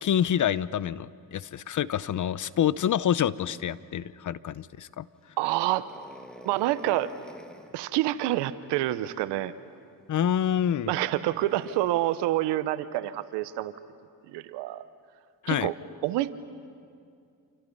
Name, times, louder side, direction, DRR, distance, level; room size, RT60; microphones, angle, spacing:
voice 1, 0.0-5.1 10.1-10.9 15.4-15.7, left 10 dB, 45° left, 18 dB, 0.7 m, -27 dB
voice 2, 5.4-5.8 6.4-7.1 7.7-9.5 10.9-13.7 14.3-14.8 15.5-15.8 16.0-16.3, right 15 dB, 85° right, 14 dB, 1.0 m, -27 dB
sound 1, 5.7-7.8 9.6-9.8 11.3-12.1, equal, ahead, 2.1 m, -48 dB
29.0 x 27.5 x 5.5 m, 2.3 s
supercardioid pair, 65°, 41 cm